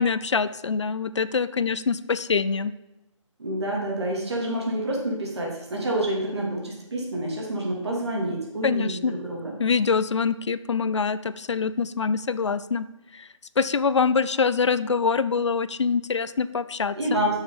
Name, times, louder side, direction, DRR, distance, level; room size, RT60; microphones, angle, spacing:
voice 1, 0.0-2.7 8.6-9.1 9.6-12.8 13.1-13.3 13.6-17.0, left 5 dB, 60° left, 15 dB, 0.5 m, -24 dB
voice 2, 3.4-9.5 16.9-17.4, right 1 dB, 55° right, -1 dB, 2.9 m, -28 dB
8.2 x 6.3 x 5.6 m, 0.93 s
figure-of-eight pair, 150°, 17 cm